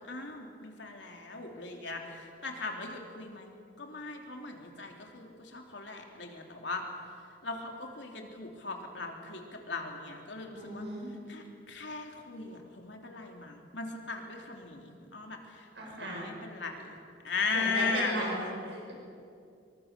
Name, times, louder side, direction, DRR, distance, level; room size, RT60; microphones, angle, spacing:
voice 1, 0.0-3.5 3.8-6.8 7.4-10.8 11.3-15.7 16.0-16.9 17.2-18.5, left 4 dB, 70° left, 2 dB, 3.2 m, -38 dB
voice 2, 10.5-11.1 15.7-16.2 17.5-18.9, right 1 dB, 70° right, -2 dB, 6.7 m, -36 dB
26.0 x 23.0 x 6.8 m, 2.5 s
head